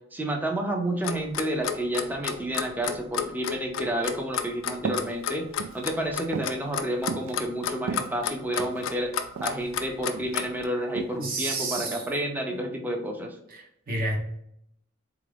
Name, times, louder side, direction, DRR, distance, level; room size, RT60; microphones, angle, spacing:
voice 1, 0.1-9.1 9.4-13.4, right 1 dB, 10° right, 0.5 m, -30 dB
Clock, 1.0-10.6, left 8 dB, 75° left, 0.4 m, -31 dB
sound 1, 4.8-5.1 5.5-5.8 6.3-6.6 7.1-7.3 7.8-8.8 9.4-9.6 9.9-10.4 11.0-11.2 11.8-12.0, right 5 dB, 70° right, 0.3 m, -34 dB
voice 2, 11.1-12.0 12.5-12.6 13.5-14.2, right 2 dB, 45° right, 0.7 m, -31 dB
3.7 x 2.5 x 3.3 m
head